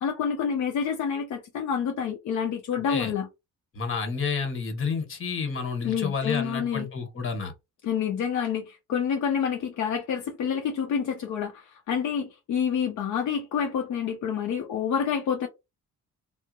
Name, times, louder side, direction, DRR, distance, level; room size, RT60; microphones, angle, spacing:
voice 1, 0.0-3.3 5.8-6.9 7.8-15.5, left 7 dB, 70° left, 0.6 m, -28 dB
voice 2, 3.7-7.5, left 5 dB, 45° left, 1.1 m, -30 dB
2.7 x 2.1 x 2.3 m
cardioid pair, 90°, 30 cm